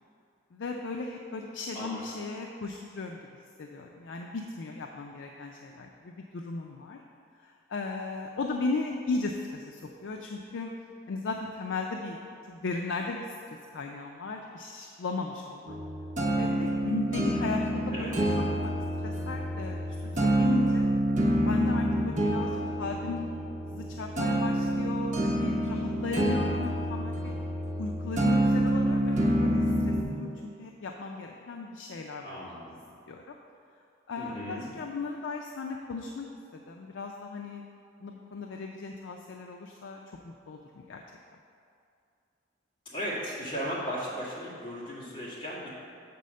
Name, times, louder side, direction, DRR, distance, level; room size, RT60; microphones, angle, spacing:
voice 1, 0.5-3.2 3.6-7.0 7.4-10.7 11.1-12.2 12.5-13.3 13.7-15.8 16.4-18.2 18.6-18.7 19.0-20.9 21.5-23.2 23.7-27.3 27.8-30.3 30.6-32.4 33.1-33.4 34.1-36.3 36.5-37.6 38.0-41.0, left 3 dB, 65° left, 2 dB, 0.4 m, -36 dB
voice 2, 1.7-2.1 17.9-18.1 32.2-32.8 34.2-34.7 42.8-45.7, equal, 25° left, -7 dB, 1.6 m, -36 dB
sound 1, 15.7-30.0, right 1 dB, 40° right, 0.9 m, -27 dB
6.9 x 4.1 x 6.4 m, 2.5 s
head